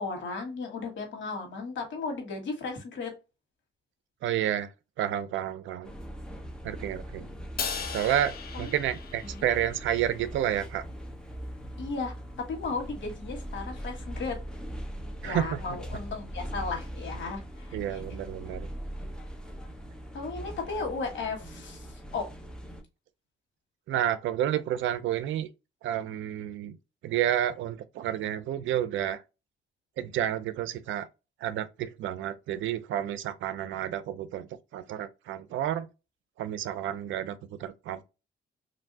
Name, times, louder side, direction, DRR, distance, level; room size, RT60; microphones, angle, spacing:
voice 1, 0.0-3.1 8.5-8.7 9.3-9.4 11.8-12.1 12.5-14.4 15.2-18.0 20.1-22.3, left 4 dB, 70° left, 1.4 m, -35 dB
voice 2, 4.2-4.7 5.0-5.9 6.6-7.3 7.9-10.8 15.2-15.6 17.7-18.7 23.9-25.5 25.8-26.8 27.0-29.2 30.0-31.1 31.4-35.9 36.4-38.0, right 11 dB, 75° right, 0.5 m, -30 dB
sound 1, 5.8-22.8, equal, 5° left, 0.8 m, -41 dB
Crash cymbal, 7.6-10.0, left 6 dB, 50° left, 0.8 m, -37 dB
3.2 x 2.6 x 2.7 m
cardioid pair, 90°, 20 cm